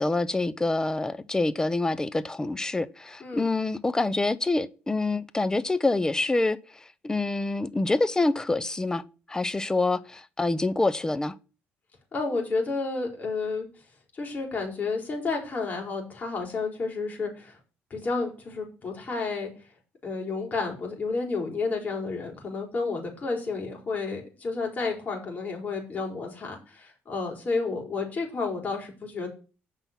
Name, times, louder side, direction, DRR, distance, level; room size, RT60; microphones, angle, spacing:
voice 1, 0.0-9.0 9.3-11.4, left 2 dB, 15° left, 0.8 m, -26 dB
voice 2, 12.1-13.7 14.1-17.6 17.9-19.5 20.0-29.3, left 4 dB, 40° left, 4.4 m, -31 dB
7.9 x 5.8 x 7.5 m
cardioid pair, 95°, 4 cm